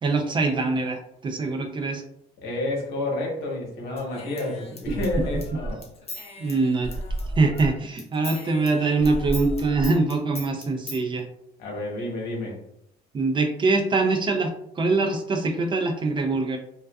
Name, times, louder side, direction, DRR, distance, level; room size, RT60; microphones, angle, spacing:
voice 1, 0.0-2.0 4.9-5.0 6.4-6.9 7.4-11.3 13.1-16.6, right 3 dB, 30° right, 4 dB, 0.3 m, -23 dB
voice 2, 2.4-5.8 11.6-12.6, left 2 dB, 70° left, -2 dB, 1.0 m, -30 dB
Human voice / Scissors, 4.0-7.7 8.0-11.0, right 1 dB, 35° left, 0.6 m, -34 dB
2.4 x 2.3 x 2.2 m, 0.74 s
cardioid pair, 110°, 17 cm